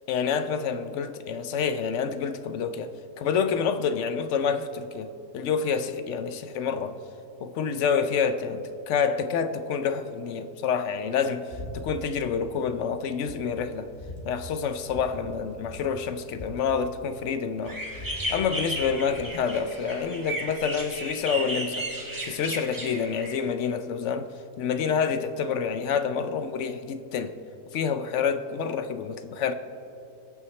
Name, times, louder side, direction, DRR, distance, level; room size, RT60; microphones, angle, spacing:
voice 1, 0.1-7.0 7.4-13.9 14.3-17.8 18.3-21.9 22.2-24.3 24.6-27.3 27.7-29.5, left 6 dB, 65° left, 0.7 m, -28 dB
sound 1, 11.5-11.7 12.0-12.5 12.9-13.0 13.3-14.2 14.9-15.1 15.3-15.4 15.6-17.3 17.6-19.0, left 1 dB, 50° left, 2.0 m, -42 dB
sound 2, 17.6-23.5, right 1 dB, 15° right, 1.4 m, -34 dB
24.0 x 8.6 x 3.2 m
omnidirectional pair, 1.7 m